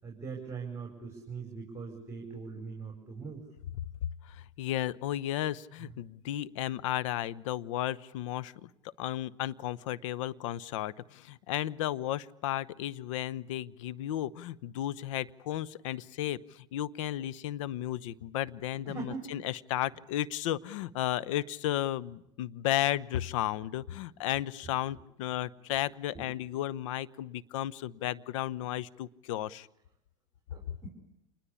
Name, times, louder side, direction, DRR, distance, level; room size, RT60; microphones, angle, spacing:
voice 1, 0.0-3.4 18.9-19.3 26.1-26.3 30.5-30.9, right 5 dB, 15° right, 1 dB, 5.8 m, -41 dB
voice 2, 4.2-8.7 9.0-29.7, left 13 dB, 75° left, 18 dB, 0.9 m, -34 dB
27.0 x 21.0 x 8.5 m, 0.84 s
supercardioid pair, 105°, 16 cm